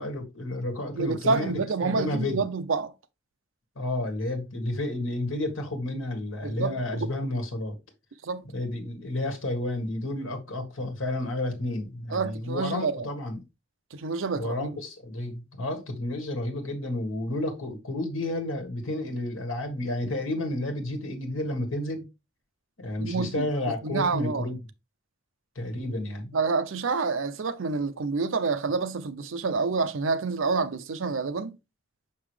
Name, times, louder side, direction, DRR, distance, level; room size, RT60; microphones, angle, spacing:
voice 1, 0.0-1.5 1.8-2.4 3.7-7.8 8.5-13.4 14.3-22.0 22.8-24.6 25.5-26.3, left 1 dB, 85° left, 1.6 m, -31 dB
voice 2, 0.9-2.9 6.4-7.1 8.2-8.4 12.1-13.1 13.9-14.7 20.1-20.2 23.0-23.5 23.8-24.5 26.3-31.6, right 4 dB, 80° right, 0.6 m, -28 dB
5.8 x 5.4 x 3.2 m
head